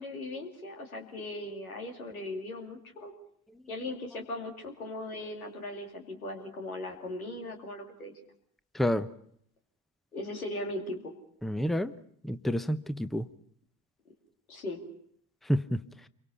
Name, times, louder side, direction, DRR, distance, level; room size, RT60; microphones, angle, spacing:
voice 1, 0.0-3.1 3.7-8.1 10.1-11.1 14.5-14.8, left 1 dB, 90° left, 3 dB, 2.7 m, -38 dB
voice 2, 8.7-9.1 11.4-11.9 12.2-13.2 15.5-15.8, equal, ahead, 13 dB, 0.9 m, -28 dB
28.0 x 23.5 x 5.7 m, 0.65 s
figure-of-eight pair, 55°, 42 cm